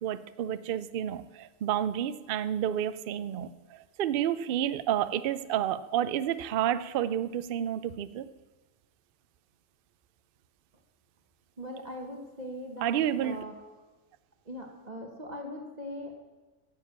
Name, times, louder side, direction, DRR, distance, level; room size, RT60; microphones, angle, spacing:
voice 1, 0.0-8.3 12.8-13.4, right 10 dB, 60° right, 14 dB, 0.6 m, -30 dB
voice 2, 11.6-13.5 14.4-16.1, equal, 35° right, 2 dB, 1.2 m, -40 dB
9.9 x 7.4 x 8.6 m, 1.2 s
omnidirectional pair, 1.3 m